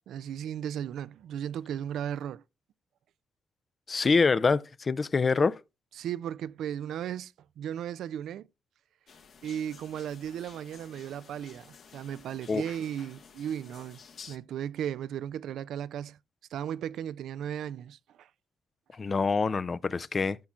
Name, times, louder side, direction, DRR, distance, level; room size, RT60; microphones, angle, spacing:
voice 1, 0.1-2.4 6.0-8.5 9.4-14.0 14.3-16.2 16.5-18.3, right 10 dB, 75° right, 0.4 m, -36 dB
voice 2, 3.9-5.6 12.5-12.6 18.9-20.4, left 4 dB, 35° left, 0.4 m, -25 dB
sound 1, 9.1-14.4, left 6 dB, 55° left, 1.2 m, -52 dB
14.0 x 5.9 x 2.4 m
cardioid pair, 90°, 0 cm